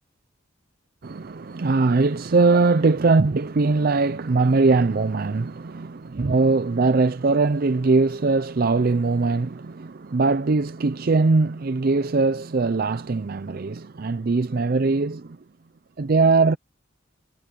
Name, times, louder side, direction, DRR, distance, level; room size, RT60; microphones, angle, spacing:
voice 1, 1.0-15.4 16.0-16.6, right 3 dB, 50° right, 0.5 m, -21 dB
head